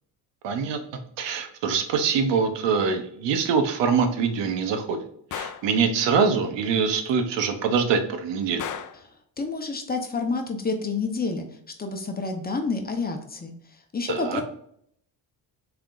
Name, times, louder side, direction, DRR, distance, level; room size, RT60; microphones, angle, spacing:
voice 1, 0.4-0.8 1.2-5.0 5.3-8.6 14.1-14.4, right 5 dB, 90° right, 7 dB, 0.9 m, -24 dB
Gunshot gunfire, 5.3-5.7 8.6-9.1, left 8 dB, 45° left, 0.5 m, -34 dB
voice 2, 9.4-11.4 11.8-13.5 13.9-14.4, left 3 dB, 20° left, 4 dB, 0.8 m, -28 dB
5.7 x 3.5 x 2.5 m, 0.68 s
cardioid pair, 110°, 42 cm